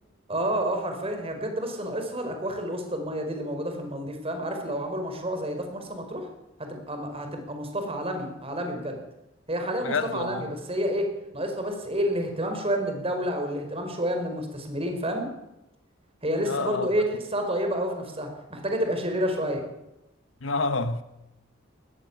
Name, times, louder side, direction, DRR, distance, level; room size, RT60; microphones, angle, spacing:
voice 1, 0.3-6.3 6.6-9.0 9.5-15.3 16.2-19.6, equal, 30° right, 4.6 m, -29 dB
voice 2, 9.8-10.5 16.4-16.9 20.4-21.0, left 3 dB, 80° left, 1.4 m, -28 dB
19.0 x 15.0 x 9.7 m
head